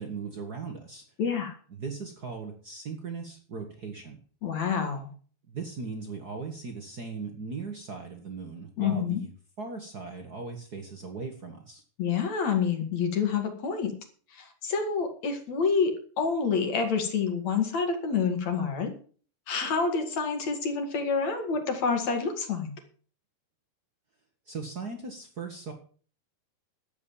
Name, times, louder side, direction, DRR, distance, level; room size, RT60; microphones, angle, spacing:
voice 1, 0.0-1.0 1.8-4.2 5.5-9.3 9.6-11.8 24.4-25.7, right 4 dB, 70° right, 4 dB, 0.9 m, -38 dB
voice 2, 1.2-1.5 4.4-5.1 8.8-9.2 12.0-13.9 14.3-18.9 19.5-22.7, left 5 dB, 50° left, 5 dB, 3.1 m, -28 dB
12.0 x 8.7 x 7.3 m, 0.43 s
omnidirectional pair, 4.3 m